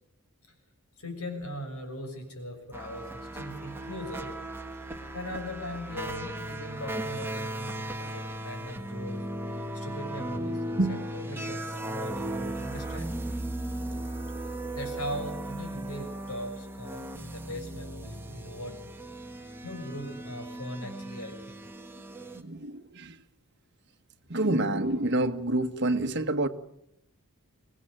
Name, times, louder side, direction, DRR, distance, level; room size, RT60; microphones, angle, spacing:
voice 1, 1.0-4.3 5.1-9.2 9.7-13.1 14.5-18.8 19.6-21.6, equal, 85° left, 6.9 m, -40 dB
sound 1, 2.7-22.4, right 1 dB, 10° right, 1.6 m, -37 dB
voice 2, 22.3-23.2 24.3-26.5, right 2 dB, 50° right, 1.4 m, -27 dB
24.5 x 18.5 x 8.9 m
head